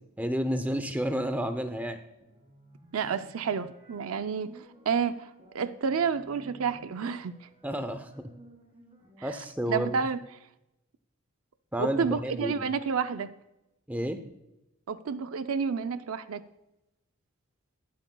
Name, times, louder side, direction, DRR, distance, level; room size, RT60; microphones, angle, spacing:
voice 1, 0.0-2.0 7.6-8.3 9.2-10.1 11.7-12.7 13.9-14.2, equal, 5° right, 8 dB, 0.6 m, -31 dB
sound 1, 2.2-9.4, right 1 dB, 25° right, 1.7 m, -55 dB
voice 2, 2.9-5.3 5.5-7.5 9.2-9.3 9.7-10.2 11.8-13.3 14.9-16.4, right 6 dB, 75° right, 11 dB, 0.5 m, -30 dB
20.0 x 7.9 x 2.3 m, 0.91 s
head